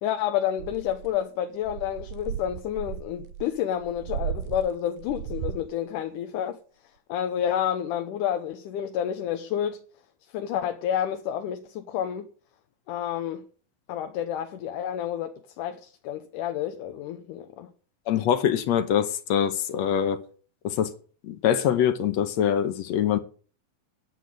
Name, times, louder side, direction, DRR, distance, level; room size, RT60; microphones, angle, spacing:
voice 1, 0.0-6.6 7.1-9.8 10.3-12.3 12.9-13.5 13.9-17.7, left 10 dB, 85° left, 2.5 m, -29 dB
sound 1, 0.6-1.2 1.6-5.7, right 10 dB, 70° right, 2.0 m, -35 dB
voice 2, 18.1-20.2 20.6-20.9 21.2-23.2, left 9 dB, 70° left, 2.0 m, -24 dB
10.5 x 7.6 x 9.1 m
omnidirectional pair, 3.5 m